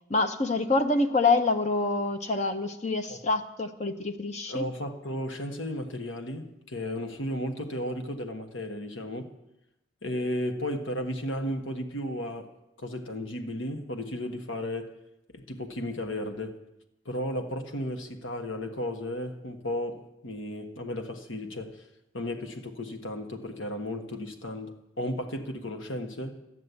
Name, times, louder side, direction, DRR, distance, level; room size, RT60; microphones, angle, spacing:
voice 1, 0.1-4.7, left 3 dB, 35° left, 8 dB, 0.7 m, -26 dB
voice 2, 4.5-9.3 10.0-12.5 12.8-14.9 15.3-16.6 17.0-21.8 22.1-26.4, left 1 dB, 80° left, 5 dB, 1.4 m, -34 dB
13.0 x 9.5 x 8.2 m, 0.90 s
head